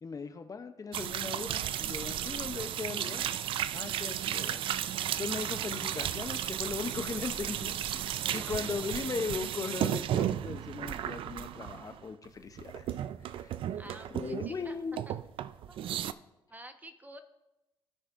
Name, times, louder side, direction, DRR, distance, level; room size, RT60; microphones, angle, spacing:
voice 1, 0.0-3.3 3.7-4.6 5.2-13.7 14.1-15.0, left 5 dB, 40° left, 8 dB, 0.7 m, -38 dB
sound 1, 0.9-12.3 12.6-14.7 15.0-16.1, right 11 dB, 70° right, 0.4 m, -34 dB
voice 2, 8.2-8.8 11.7-11.8 13.8-14.8 15.1-15.2 15.7-16.2 16.5-17.2, right 1 dB, 20° right, 7 dB, 1.1 m, -50 dB
17.0 x 6.3 x 2.5 m, 0.97 s
supercardioid pair, 60°, 9 cm